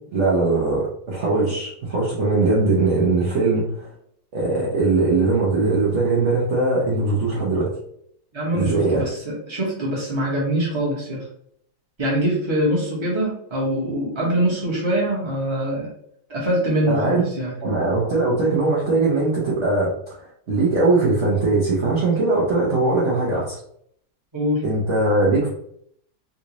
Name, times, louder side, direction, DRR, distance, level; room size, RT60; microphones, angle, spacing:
voice 1, 0.1-3.9 4.3-7.7 8.5-9.0 16.9-17.3 17.6-23.6 24.6-25.5, right 3 dB, 50° right, -6 dB, 1.0 m, -20 dB
voice 2, 8.3-11.3 12.0-15.9 16.3-17.5 24.3-24.6, right 1 dB, 20° right, -5 dB, 1.1 m, -23 dB
3.8 x 2.5 x 3.0 m, 0.67 s
omnidirectional pair, 1.9 m